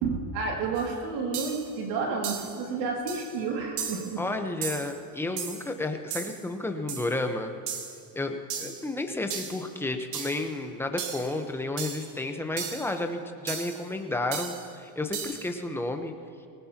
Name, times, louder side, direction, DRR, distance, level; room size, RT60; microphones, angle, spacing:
voice 1, 0.0-4.2, right 4 dB, 90° right, 0 dB, 2.7 m, -30 dB
sound 1, 0.8-0.9 1.3-1.7 2.2-2.6 3.1-3.3 3.8-4.1 4.6-4.9 5.4-5.7 6.1-6.4 6.9-7.1 7.7-8.0 8.5-8.8 9.3-9.6 10.1-10.4 11.0-11.3 11.8-12.1 12.6-12.9 13.5-13.8 14.3-14.7 15.1-15.5, right 7 dB, 60° right, 1.8 m, -35 dB
voice 2, 4.2-7.5 8.1-16.1, left 2 dB, 5° left, 5 dB, 1.0 m, -31 dB
20.0 x 18.5 x 3.0 m, 2.4 s
supercardioid pair, 120°, 48 cm